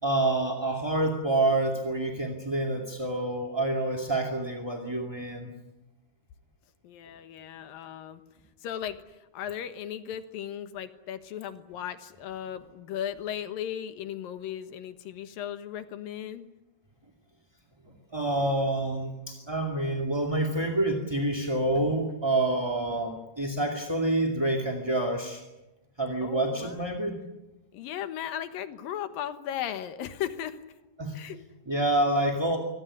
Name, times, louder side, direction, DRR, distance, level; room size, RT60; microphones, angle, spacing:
voice 1, 0.0-5.5 18.1-25.4 26.0-27.1 31.0-31.1 31.7-32.6, right 2 dB, 10° right, 2 dB, 1.5 m, -27 dB
voice 2, 6.8-8.2 8.6-16.5 26.2-26.8 27.7-30.6 31.1-31.5, left 10 dB, 75° left, 10 dB, 2.9 m, -36 dB
25.0 x 18.0 x 9.9 m, 1.0 s
omnidirectional pair, 4.2 m